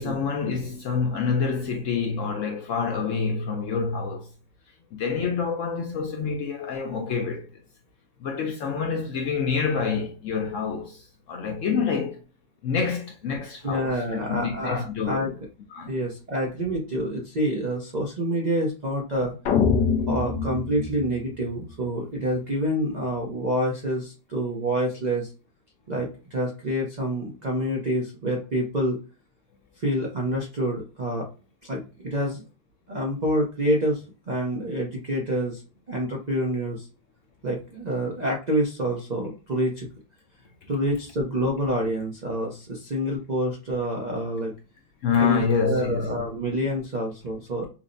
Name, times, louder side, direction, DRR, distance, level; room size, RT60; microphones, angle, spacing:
voice 1, 0.0-4.3 4.9-7.6 8.2-12.2 12.6-15.3 15.7-15.9 20.0-20.1 40.6-40.7 45.0-46.1, left 5 dB, 65° left, 0.8 m, -27 dB
voice 2, 13.6-15.3 15.8-19.3 20.1-25.3 25.9-29.0 29.8-31.3 31.7-32.4 32.9-35.6 35.9-36.9 37.4-39.9 40.7-44.5 45.2-47.7, right 1 dB, 75° right, 0.4 m, -27 dB
sound 1, 19.5-21.7, left 6 dB, 85° left, 1.2 m, -24 dB
5.6 x 2.0 x 2.6 m
omnidirectional pair, 1.8 m